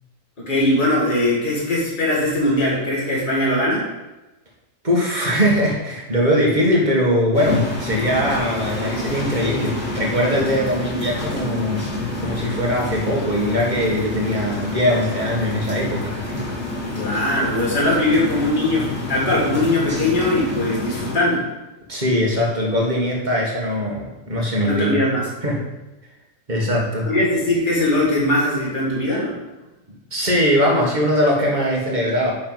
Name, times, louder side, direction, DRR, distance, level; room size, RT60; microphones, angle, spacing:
voice 1, 0.4-3.9 16.9-21.4 24.6-25.3 27.0-29.3, left 1 dB, 40° left, -5 dB, 2.5 m, -20 dB
voice 2, 4.8-11.8 12.2-16.5 21.9-25.0 25.4-25.6 26.5-27.1 30.1-32.3, equal, 35° right, -2 dB, 2.0 m, -21 dB
sound 1, 7.3-21.2, left 2 dB, 10° right, 2.5 m, -28 dB
9.6 x 6.4 x 4.1 m, 1.0 s
omnidirectional pair, 1.4 m